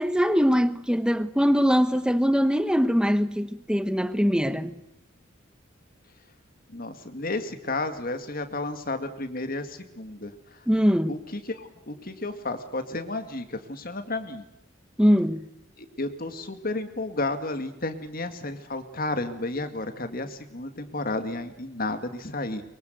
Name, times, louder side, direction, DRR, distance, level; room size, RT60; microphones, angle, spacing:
voice 1, 0.0-4.7 10.7-11.2 15.0-15.4, equal, 5° right, 1.1 m, -22 dB
voice 2, 6.7-10.6 11.1-14.4 15.8-22.6, left 2 dB, 45° left, 2.1 m, -32 dB
24.0 x 23.5 x 8.0 m
head